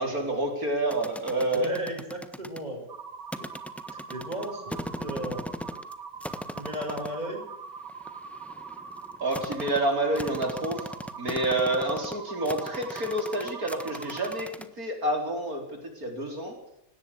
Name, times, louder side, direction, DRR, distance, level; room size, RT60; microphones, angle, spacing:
voice 1, 0.0-1.7 9.2-10.9 11.2-16.6, right 1 dB, 55° right, 3 dB, 4.7 m, -28 dB
sound 1, 0.9-2.6 3.3-5.9 6.2-7.2 7.9-14.7, equal, ahead, 1.1 m, -38 dB
voice 2, 1.5-2.9 3.4-3.5 3.9-5.4 6.6-7.4, right 1 dB, 25° right, 1 dB, 6.8 m, -35 dB
sound 2, 2.9-14.5, right 5 dB, 80° right, 2.7 m, -42 dB
18.5 x 18.0 x 8.4 m, 0.83 s
omnidirectional pair, 1.8 m